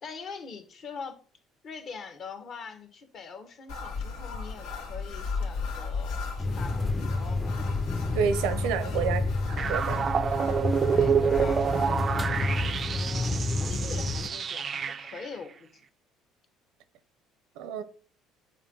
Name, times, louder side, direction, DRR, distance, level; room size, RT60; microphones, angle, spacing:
voice 1, 0.0-1.2 1.6-7.4 8.8-9.1 10.8-15.8, left 5 dB, 50° left, 1.3 m, -43 dB
sound 1, 3.7-11.9, left 4 dB, 90° left, 1.5 m, -36 dB
sound 2, 6.4-14.3, left 2 dB, 15° left, 0.6 m, -30 dB
voice 2, 8.1-9.2 9.5-10.1 17.6-17.8, right 7 dB, 85° right, 0.7 m, -29 dB
sound 3, 9.6-15.3, right 7 dB, 40° right, 0.4 m, -28 dB
7.2 x 2.6 x 5.4 m
cardioid pair, 105°, 0 cm